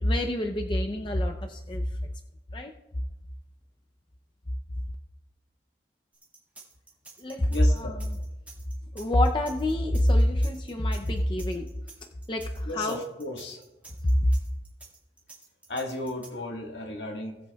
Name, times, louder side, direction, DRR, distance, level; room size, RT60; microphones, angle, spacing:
voice 1, 0.0-1.9 2.5-2.7 7.2-7.5 7.8-7.9 8.9-11.7 12.3-13.0 14.2-14.3, left 1 dB, 25° left, 3 dB, 0.5 m, -26 dB
sound 1, 6.1-16.3, right 3 dB, 10° right, 1.8 m, -49 dB
voice 2, 7.5-7.9 12.7-13.6 15.7-17.4, left 1 dB, 75° left, 2 dB, 1.6 m, -34 dB
19.0 x 7.9 x 2.3 m, 0.98 s
head